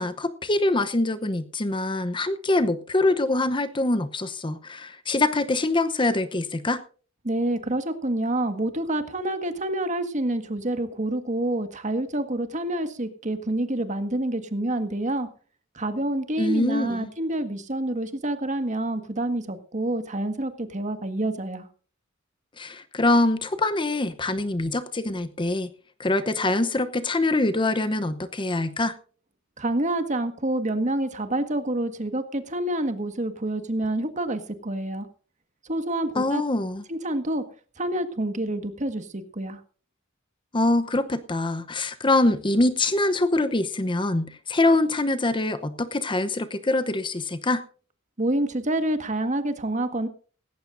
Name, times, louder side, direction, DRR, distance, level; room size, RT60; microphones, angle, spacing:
voice 1, 0.0-6.8 16.4-17.1 22.6-25.7 26.0-28.9 36.2-36.8 40.5-47.6, left 2 dB, 25° left, 10 dB, 0.8 m, -24 dB
voice 2, 7.2-15.3 15.7-21.7 29.6-35.1 35.6-36.4 36.9-37.4 37.8-39.6 48.2-50.1, right 1 dB, 35° right, 8 dB, 1.7 m, -27 dB
18.0 x 16.5 x 2.6 m, 0.40 s
head